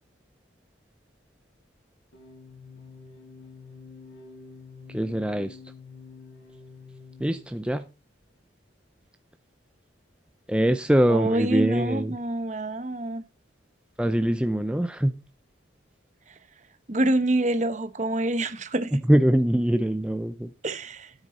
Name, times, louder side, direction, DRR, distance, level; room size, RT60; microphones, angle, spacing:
sound 1, 2.1-7.8, left 4 dB, 65° left, 4.8 m, -47 dB
voice 1, 4.9-5.6 7.2-7.9 10.5-12.2 14.0-15.1 18.9-20.5, equal, 5° right, 0.5 m, -23 dB
voice 2, 11.1-13.2 16.9-19.0 20.6-21.1, right 1 dB, 40° right, 1.0 m, -26 dB
13.5 x 8.1 x 4.2 m
head